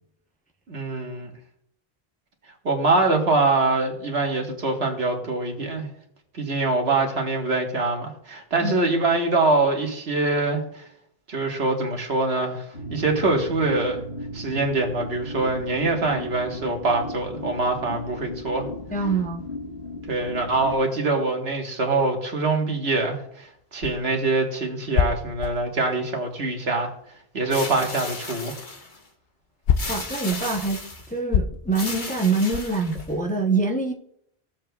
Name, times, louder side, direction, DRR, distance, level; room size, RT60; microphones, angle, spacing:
voice 1, 0.7-1.3 2.6-5.9 6.3-10.8 11.3-14.0 14.3-18.7 20.1-26.9 27.3-28.6, right 3 dB, 85° right, 1.7 m, -24 dB
sound 1, 12.7-20.8, left 1 dB, 90° left, 1.7 m, -36 dB
voice 2, 18.9-19.5 29.9-30.8 31.1-33.9, right 3 dB, 10° left, 0.6 m, -25 dB
sound 2, 23.4-27.2 27.5-33.3, left 8 dB, 70° left, 0.8 m, -28 dB
sound 3, 27.5-29.0 29.8-31.1 31.7-33.2, left 2 dB, 50° left, 1.4 m, -35 dB
16.0 x 7.4 x 2.3 m
omnidirectional pair, 1.0 m